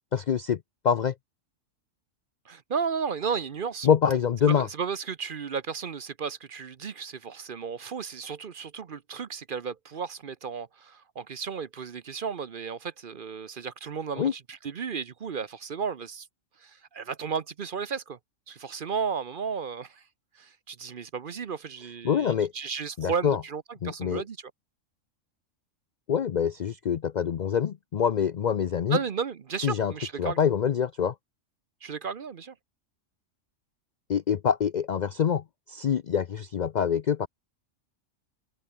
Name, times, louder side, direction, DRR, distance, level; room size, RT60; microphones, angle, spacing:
voice 1, 0.1-0.6 0.8-1.1 3.8-4.7 14.2-14.3 22.0-22.5 23.0-23.4 23.8-24.2 26.1-29.0 29.6-29.9 30.2-31.1 34.1-37.3, left 8 dB, 55° left, 0.5 m, -25 dB
voice 2, 2.5-3.9 4.5-16.3 16.6-18.2 18.5-20.0 20.4-24.5 28.9-30.4 31.8-32.5, right 6 dB, 50° right, 0.8 m, -34 dB
open air
omnidirectional pair, 1.3 m